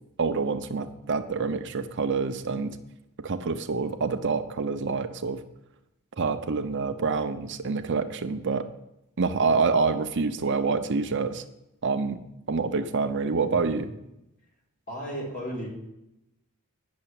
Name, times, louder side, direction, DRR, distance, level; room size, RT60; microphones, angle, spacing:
voice 1, 0.2-2.8 3.2-5.4 6.2-8.7 9.2-11.4 11.8-13.9, right 4 dB, 55° right, 9 dB, 0.7 m, -27 dB
voice 2, 14.9-15.7, equal, 40° left, -3 dB, 4.6 m, -34 dB
9.6 x 6.7 x 8.8 m, 0.87 s
head